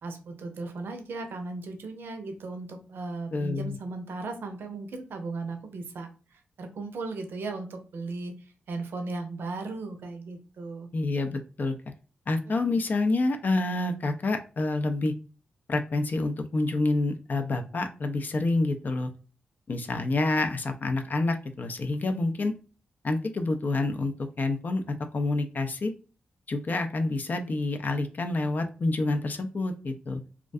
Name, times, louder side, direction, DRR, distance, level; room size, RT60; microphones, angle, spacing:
voice 1, 0.0-10.9 12.5-12.8, right 3 dB, 75° right, 5 dB, 0.5 m, -37 dB
voice 2, 3.3-3.8 10.9-11.7 12.3-15.1 15.7-19.1 19.7-22.5 23.0-25.9 26.5-30.2, left 2 dB, 50° left, 7 dB, 0.4 m, -28 dB
2.4 x 2.2 x 2.5 m, 0.36 s
supercardioid pair, 45°, 4 cm